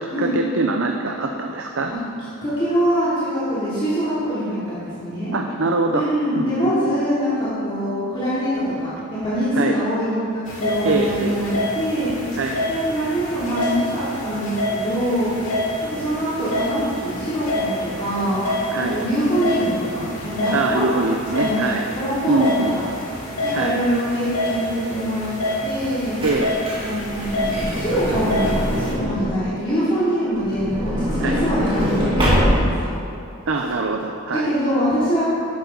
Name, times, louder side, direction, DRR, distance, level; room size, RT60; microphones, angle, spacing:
voice 1, 0.0-1.9 5.3-6.1 6.4-6.7 9.5-9.7 10.8-11.6 12.4-12.6 18.7-19.0 20.5-21.9 22.3-22.8 23.5-23.8 26.2-26.5 31.2-31.4 33.5-34.5, right 2 dB, 60° right, 3 dB, 0.6 m, -23 dB
voice 2, 2.4-5.4 5.9-12.1 12.7-15.3 15.8-18.4 18.8-20.8 21.3-21.7 21.9-22.9 23.4-25.3 25.6-26.2 26.8-32.9 34.3-35.2, equal, 25° left, -12 dB, 2.9 m, -24 dB
sound 1, 10.4-28.9, left 1 dB, 80° left, 3.1 m, -27 dB
Truck / Door, 25.8-29.3 30.3-32.9 33.6-33.7 33.9-34.0, equal, 25° right, 2.4 m, -23 dB
11.5 x 11.5 x 4.0 m, 2.6 s
head